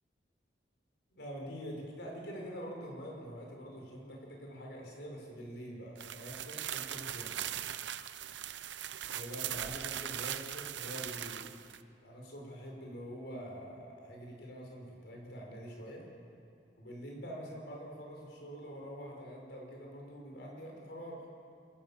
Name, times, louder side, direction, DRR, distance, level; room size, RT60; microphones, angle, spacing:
voice 1, 1.1-7.3 9.1-11.5 12.0-16.0 16.8-21.3, equal, 70° left, -1 dB, 5.5 m, -45 dB
sound 1, 6.0-11.8, right 11 dB, 90° right, 0.7 m, -40 dB
27.5 x 14.5 x 7.3 m, 2.5 s
head